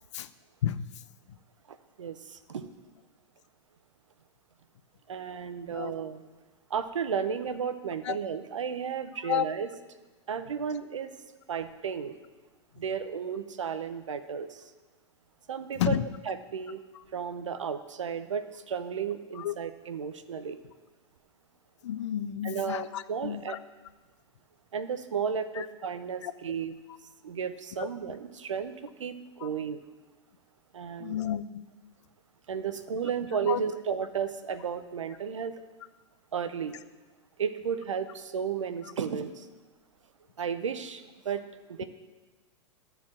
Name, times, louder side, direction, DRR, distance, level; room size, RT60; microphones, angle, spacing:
voice 1, 1.7-2.7 5.1-6.3 6.7-9.7 10.3-11.1 11.5-12.1 12.8-14.6 15.5-16.8 17.1-20.6 22.4-23.6 24.7-26.7 27.2-29.8 30.7-31.2 32.5-35.5 36.3-36.8 37.4-39.5 40.4-41.4 41.7-41.8, right 7 dB, 85° right, 10 dB, 0.7 m, -33 dB
voice 2, 21.8-23.6 25.6-25.7 26.2-26.3 27.8-27.9 29.4-29.5 31.0-31.7 33.3-33.6, left 10 dB, 70° left, 13 dB, 0.5 m, -31 dB
11.5 x 4.5 x 7.4 m, 1.3 s
hypercardioid pair, 100°, 16 cm